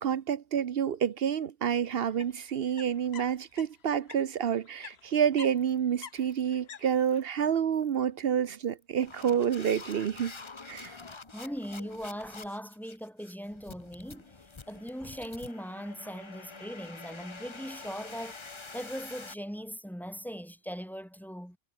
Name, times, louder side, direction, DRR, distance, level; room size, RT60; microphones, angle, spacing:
voice 1, 0.0-10.3 10.7-11.0, right 8 dB, 70° right, 1.0 m, -28 dB
sound 1, 1.9-4.2 4.5-7.2, left 7 dB, 80° left, 1.3 m, -48 dB
sound 2, 5.6-5.8 6.1-6.4 6.9-7.2 7.7-8.0 8.6-19.3, left 4 dB, 30° left, 1.0 m, -47 dB
voice 2, 11.3-14.3 14.7-18.4 18.7-21.6, equal, ahead, 2.3 m, -40 dB
omnidirectional pair, 1.0 m